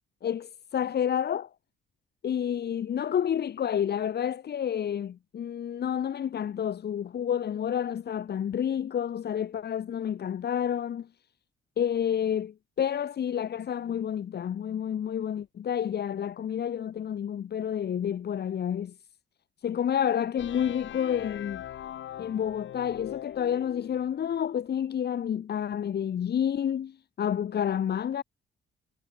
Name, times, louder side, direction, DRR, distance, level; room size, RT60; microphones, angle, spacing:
voice 1, 0.2-1.5 2.2-11.1 11.8-18.9 19.6-21.6 22.2-28.2, left 9 dB, 55° left, 1.8 m, -29 dB
sound 1, 20.4-24.1, left 11 dB, 75° left, 6.4 m, -41 dB
cardioid pair, 90°, 20 cm